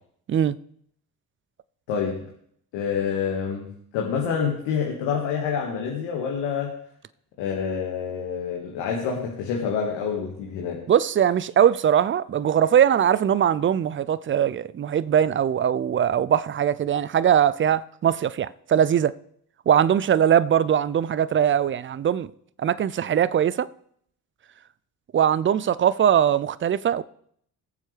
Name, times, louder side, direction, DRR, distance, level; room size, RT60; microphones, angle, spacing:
voice 1, 1.9-2.2 2.7-6.8 7.4-10.8, left 6 dB, 70° left, 1.9 m, -27 dB
voice 2, 10.9-19.1 19.7-22.3 22.6-23.7 25.1-27.0, right 9 dB, 30° right, 0.5 m, -21 dB
21.5 x 7.3 x 3.4 m
hypercardioid pair, 50°, 45 cm